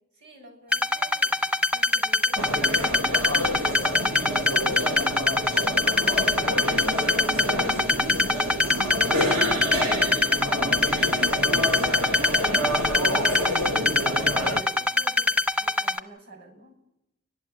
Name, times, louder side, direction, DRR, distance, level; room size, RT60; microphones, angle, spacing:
voice 1, 0.2-4.9 5.7-10.2 11.1-13.3 14.0-16.7, right 1 dB, 55° right, 4 dB, 6.6 m, -45 dB
sound 1, 0.7-16.0, left 3 dB, 5° right, 0.8 m, -23 dB
sound 2, 2.4-14.6, equal, 70° right, 1.9 m, -28 dB
30.0 x 11.5 x 9.5 m, 0.88 s
head